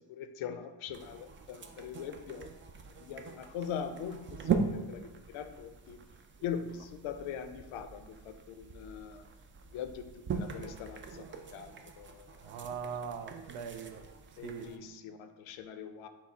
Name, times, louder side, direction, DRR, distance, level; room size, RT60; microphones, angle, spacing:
voice 1, 0.1-2.5 3.0-6.0 6.4-9.2 9.7-11.2 11.5-12.5 14.4-16.1, left 8 dB, 75° left, 0.6 m, -42 dB
sound 1, 0.9-14.8, right 5 dB, 25° right, 0.3 m, -40 dB
voice 2, 12.4-14.1 14.3-14.7, right 6 dB, 75° right, 0.6 m, -41 dB
5.8 x 2.0 x 4.3 m
cardioid pair, 85°, 50 cm